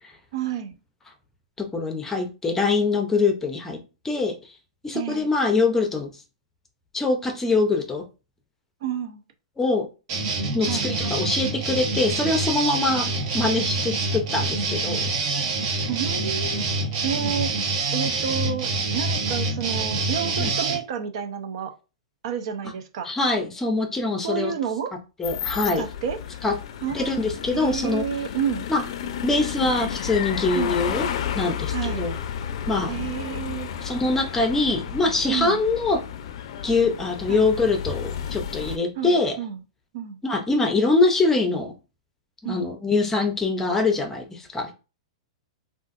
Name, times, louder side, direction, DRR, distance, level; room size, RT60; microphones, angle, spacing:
voice 1, 0.3-0.7 4.9-5.3 8.8-9.2 10.7-10.9 15.9-16.6 17.0-17.5 17.9-21.7 22.2-23.1 24.2-24.9 25.7-26.2 26.8-28.7 30.5-30.8 31.7-32.1 32.9-33.7 35.3-35.6 37.3-37.4 39.0-39.6 39.9-40.2 42.4-42.7, right 8 dB, 60° right, 0.6 m, -30 dB
voice 2, 1.6-4.4 4.8-6.1 6.9-8.0 9.6-9.9 10.5-15.1 15.7-15.9 20.4-20.6 23.0-24.5 25.2-25.8 26.4-26.6 26.9-28.0 28.7-28.8 29.2-31.1 31.3-32.1 32.7-32.9 33.8-36.0 36.6-39.4 40.2-41.7 42.4-44.7, left 3 dB, 10° left, 0.6 m, -23 dB
sound 1, 10.1-20.8, right 3 dB, 45° right, 1.1 m, -26 dB
sound 2, 25.2-38.8, left 9 dB, 65° left, 0.4 m, -32 dB
3.7 x 2.5 x 2.5 m
hypercardioid pair, 135°, 3 cm